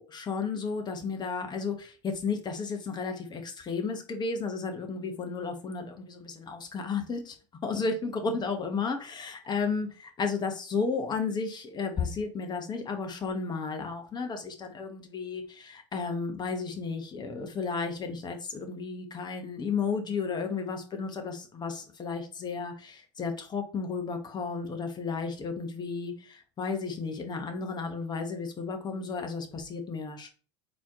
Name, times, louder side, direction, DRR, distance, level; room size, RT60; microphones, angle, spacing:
voice 1, 0.0-7.3 7.6-30.3, left 4 dB, 30° left, 1.1 m, -33 dB
4.1 x 3.0 x 3.6 m
hypercardioid pair, 95°, 15 cm